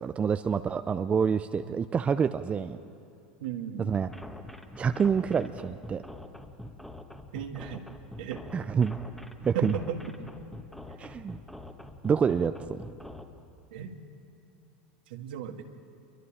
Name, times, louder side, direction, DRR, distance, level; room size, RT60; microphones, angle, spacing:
voice 1, 0.0-2.8 3.8-4.1 4.8-6.0 8.5-9.0 9.4-9.7 11.0-11.4 12.0-12.8, right 6 dB, 25° right, 10 dB, 0.6 m, -27 dB
voice 2, 3.4-3.9 7.3-7.8 8.2-8.4 9.5-10.0 13.7-14.0 15.1-15.6, right 7 dB, 70° right, 5 dB, 1.9 m, -35 dB
sound 1, 3.9-13.2, left 1 dB, 5° left, 1.7 m, -44 dB
28.0 x 23.5 x 5.0 m, 2.6 s
hypercardioid pair, 95°, 5 cm